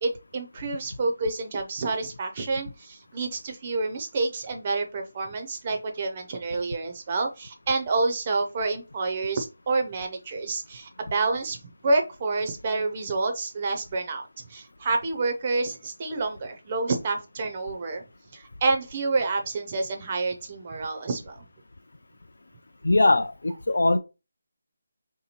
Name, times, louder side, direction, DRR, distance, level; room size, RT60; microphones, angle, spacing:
voice 1, 0.0-11.6 11.8-18.0 18.3-21.4, right 3 dB, 20° right, 0.4 m, -28 dB
voice 2, 22.8-24.0, left 2 dB, 80° left, 0.5 m, -21 dB
3.5 x 2.8 x 4.2 m
figure-of-eight pair, 175°, 0 cm